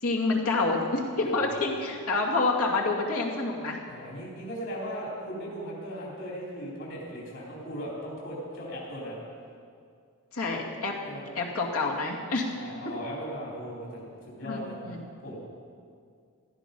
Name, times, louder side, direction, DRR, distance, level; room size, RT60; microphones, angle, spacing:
voice 1, 0.0-3.8 10.3-11.0 11.3-12.5 14.4-15.0, left 3 dB, 80° left, -1 dB, 2.4 m, -28 dB
voice 2, 1.2-1.6 3.9-9.2 11.0-11.2 12.5-14.8 15.2-15.4, equal, 55° left, -5 dB, 4.1 m, -38 dB
16.5 x 13.5 x 5.4 m, 2.2 s
head